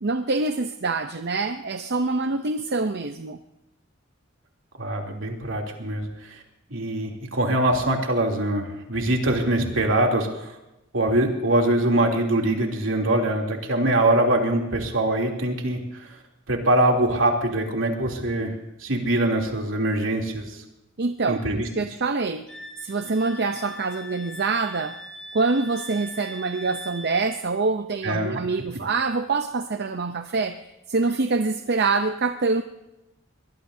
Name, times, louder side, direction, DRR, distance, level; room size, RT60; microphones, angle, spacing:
voice 1, 0.0-3.4 21.0-22.5 22.8-25.0 25.3-30.6 30.9-32.6, right 3 dB, 55° right, 7 dB, 0.7 m, -25 dB
voice 2, 4.8-6.1 6.7-10.5 10.9-16.1 16.5-18.5 18.8-20.5 21.3-21.5 28.0-28.4, right 1 dB, 75° right, 1 dB, 3.1 m, -23 dB
Wind instrument woodwind instrument, 22.5-27.3, right 1 dB, 5° left, 3.4 m, -41 dB
23.0 x 19.5 x 2.8 m, 0.94 s
head